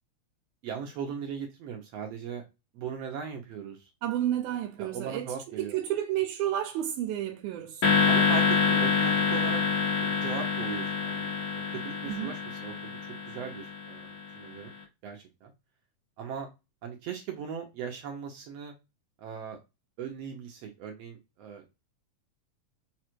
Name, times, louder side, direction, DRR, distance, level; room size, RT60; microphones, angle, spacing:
voice 1, 0.6-2.4 2.7-3.9 4.8-5.8 8.1-9.6 10.0-14.7 15.0-15.5 16.2-16.5 16.8-18.7 19.2-19.6 20.0-21.8, right 7 dB, 70° right, 1.6 m, -39 dB
voice 2, 4.0-7.9 12.0-12.3, right 12 dB, 85° right, 2.1 m, -31 dB
sound 1, 7.8-14.2, left 5 dB, 85° left, 0.8 m, -27 dB
5.1 x 2.4 x 4.5 m
omnidirectional pair, 3.5 m